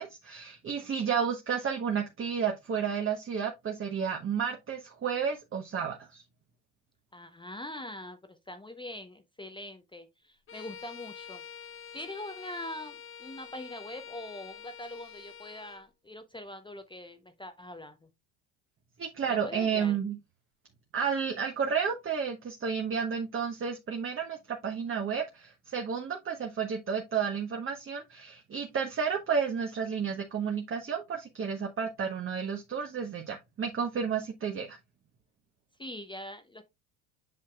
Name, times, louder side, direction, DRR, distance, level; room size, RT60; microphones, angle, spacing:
voice 1, 0.0-6.2 19.0-20.2 20.9-34.8, right 6 dB, 30° right, 1.1 m, -31 dB
voice 2, 7.1-11.4 11.9-18.1 19.3-20.0 35.8-36.6, left 1 dB, 10° left, 0.7 m, -43 dB
Bowed string instrument, 10.5-15.9, left 8 dB, 30° left, 1.0 m, -47 dB
7.7 x 5.7 x 2.3 m
hypercardioid pair, 80°, 43 cm